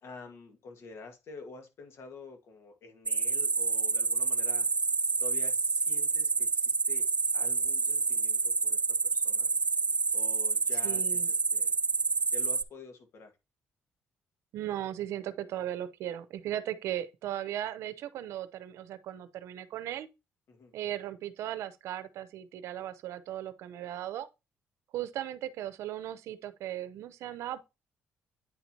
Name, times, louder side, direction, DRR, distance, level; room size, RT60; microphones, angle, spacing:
voice 1, 0.0-4.7 5.2-7.1 7.3-9.5 10.1-11.7 12.3-13.3 20.5-20.7, left 4 dB, 70° left, 1.6 m, -48 dB
sound 1, 3.1-12.6, right 4 dB, 30° right, 0.3 m, -28 dB
voice 2, 10.8-11.3 14.5-20.1 20.7-24.3 24.9-27.6, right 12 dB, 80° right, 0.6 m, -37 dB
9.2 x 4.4 x 2.7 m
cardioid pair, 80°, 5 cm